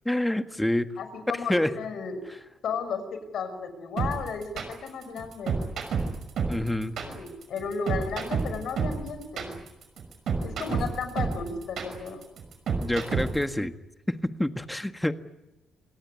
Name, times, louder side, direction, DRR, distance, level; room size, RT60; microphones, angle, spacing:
voice 1, 0.0-0.9 1.5-1.7 6.5-7.0 12.8-13.7 14.1-15.1, left 1 dB, 10° left, 9 dB, 1.5 m, -27 dB
voice 2, 1.0-2.2 2.6-5.6 7.1-9.5 10.4-12.2, left 5 dB, 70° left, 8 dB, 5.7 m, -34 dB
sound 1, 4.0-13.5, right 5 dB, 65° right, 5.8 m, -29 dB
27.0 x 18.0 x 9.6 m, 1.0 s
cardioid pair, 90°, 0 cm